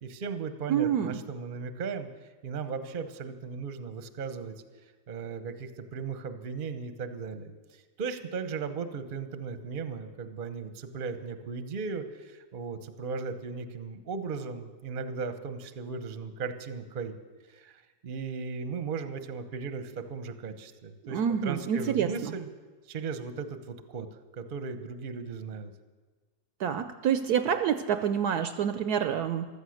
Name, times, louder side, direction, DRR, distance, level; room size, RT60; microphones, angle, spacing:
voice 1, 0.0-2.1 2.4-4.5 5.1-17.2 17.5-22.5 22.9-24.1 24.3-25.7, right 5 dB, 40° right, 9 dB, 0.8 m, -37 dB
voice 2, 0.7-1.2 21.1-22.3 26.6-29.5, right 8 dB, 70° right, 9 dB, 1.0 m, -27 dB
15.5 x 12.5 x 6.4 m, 1.3 s
omnidirectional pair, 1.9 m